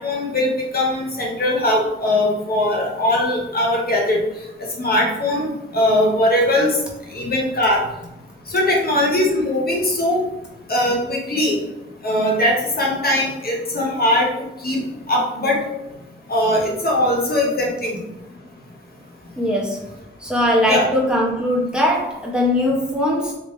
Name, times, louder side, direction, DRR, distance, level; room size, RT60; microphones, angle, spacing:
voice 1, 0.0-4.2 4.8-6.8 7.1-7.8 8.5-10.2 10.7-11.6 12.0-15.6 16.3-18.0 20.6-20.9, left 1 dB, 50° left, -2 dB, 1.1 m, -20 dB
voice 2, 19.4-19.8 20.2-23.3, left 1 dB, 5° right, -3 dB, 1.1 m, -20 dB
3.4 x 2.9 x 3.2 m, 0.89 s
cardioid pair, 65°, 20 cm